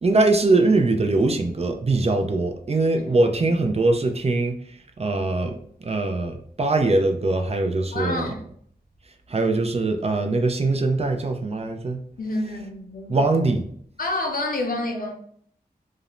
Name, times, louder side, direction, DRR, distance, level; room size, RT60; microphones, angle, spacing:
voice 1, 0.0-4.6 5.0-8.3 9.3-12.0 13.1-13.6, right 2 dB, 40° right, 0.4 m, -22 dB
voice 2, 7.9-8.4 12.2-13.1 14.0-15.1, left 2 dB, 60° left, 0.6 m, -28 dB
2.5 x 2.0 x 2.9 m
cardioid pair, 45°, 17 cm